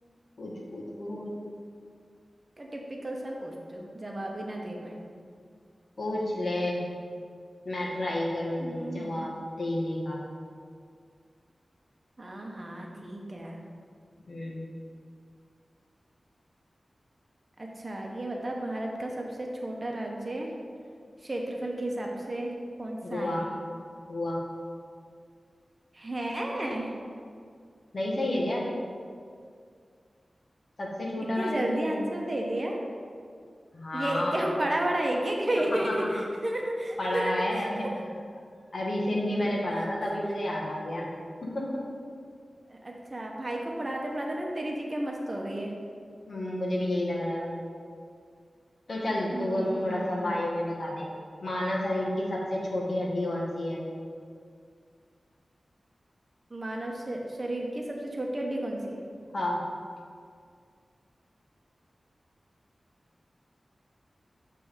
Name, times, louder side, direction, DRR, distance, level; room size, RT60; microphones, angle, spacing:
voice 1, 0.4-1.4 6.0-6.8 7.6-10.2 14.3-14.6 23.0-23.4 24.1-24.4 27.9-28.7 30.8-32.2 33.7-34.5 35.7-36.0 37.0-37.9 38.7-41.1 41.5-41.8 46.3-47.6 48.9-51.1 51.4-53.8 59.3-59.6, left 1 dB, 60° left, -3 dB, 1.3 m, -30 dB
voice 2, 2.6-5.0 8.6-9.4 12.2-13.6 17.6-20.5 21.2-22.5 22.8-23.4 25.9-26.9 31.4-32.8 33.9-37.7 42.7-45.7 49.3-50.3 56.5-59.0, right 1 dB, 35° right, 0 dB, 0.8 m, -32 dB
8.0 x 3.4 x 5.0 m, 2.2 s
wide cardioid pair, 100°, 0 cm